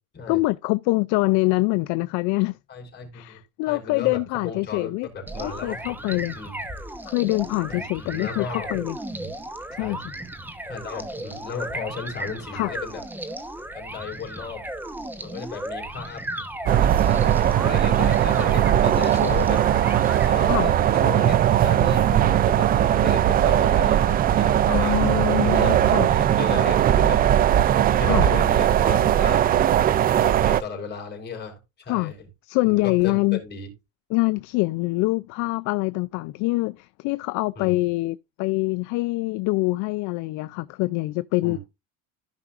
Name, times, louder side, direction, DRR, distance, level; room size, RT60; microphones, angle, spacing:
voice 1, 0.3-2.6 3.1-5.1 5.4-6.4 7.1-9.0 9.7-10.0 12.5-12.7 20.5-20.7 24.7-26.1 28.1-28.3 31.9-32.1 32.4-33.4 34.1-41.6, left 23 dB, 55° left, 0.4 m, -24 dB
voice 2, 2.7-3.4 3.6-6.6 7.7-8.7 9.2-9.3 9.8-10.0 10.6-13.0 13.7-14.6 15.2-16.4 16.8-19.6 20.2-25.1 25.5-27.2 28.0-29.7 30.2-31.5 31.8-32.2 32.6-33.7 37.6-37.8 41.4-41.6, left 5 dB, 30° left, 4.6 m, -35 dB
sound 1, 5.3-20.3, right 1 dB, 5° right, 1.0 m, -35 dB
sound 2, 16.7-30.6, right 11 dB, 25° right, 0.4 m, -19 dB
15.0 x 5.9 x 2.5 m
cardioid pair, 140°, 36 cm